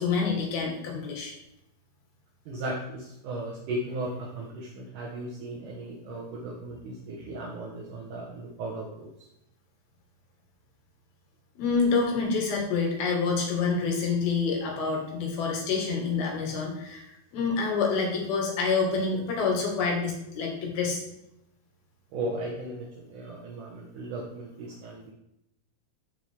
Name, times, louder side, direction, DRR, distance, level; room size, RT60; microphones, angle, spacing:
voice 1, 0.0-1.3 11.6-21.0, left 4 dB, 65° left, 0 dB, 3.3 m, -27 dB
voice 2, 2.5-9.1 22.1-25.1, right 1 dB, 70° right, -3 dB, 2.0 m, -36 dB
13.5 x 4.8 x 3.4 m, 0.83 s
omnidirectional pair, 5.1 m